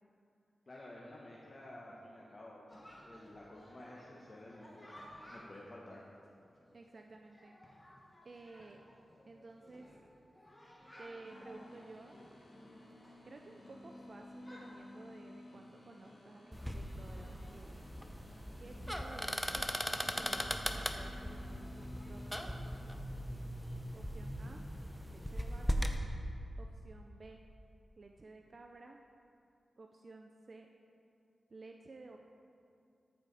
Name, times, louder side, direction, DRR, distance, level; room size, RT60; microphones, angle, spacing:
voice 1, 0.7-5.0 5.3-6.0, left 1 dB, 45° left, -4 dB, 1.0 m, -52 dB
Chatter, 2.7-22.3, equal, 20° left, 1.5 m, -59 dB
voice 2, 6.7-7.6 8.2-8.8 9.3-9.9 11.0-12.1 13.2-17.8 18.6-19.7 20.2-22.6 24.0-24.6 25.1-25.9 26.6-27.4 28.0-29.0 29.8-30.7 31.5-32.2, right 3 dB, 55° right, 3 dB, 0.4 m, -54 dB
sound 1, 11.2-22.8, left 2 dB, 65° left, 1.5 m, -55 dB
sound 2, 16.5-26.0, equal, ahead, 0.6 m, -39 dB
14.0 x 4.8 x 3.9 m, 2.5 s
cardioid pair, 55°, 0 cm